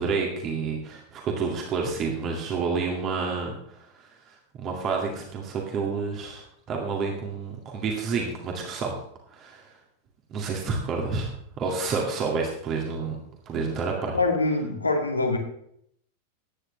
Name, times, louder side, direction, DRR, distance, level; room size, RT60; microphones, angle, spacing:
voice 1, 0.0-3.8 4.6-8.9 9.3-9.6 10.3-11.3 11.6-13.2 13.5-14.2, right 4 dB, 30° right, 0 dB, 2.1 m, -29 dB
voice 2, 14.1-15.4, left 3 dB, 80° left, 3 dB, 2.1 m, -24 dB
15.5 x 10.0 x 3.3 m, 0.71 s
figure-of-eight pair, 90°, 0 cm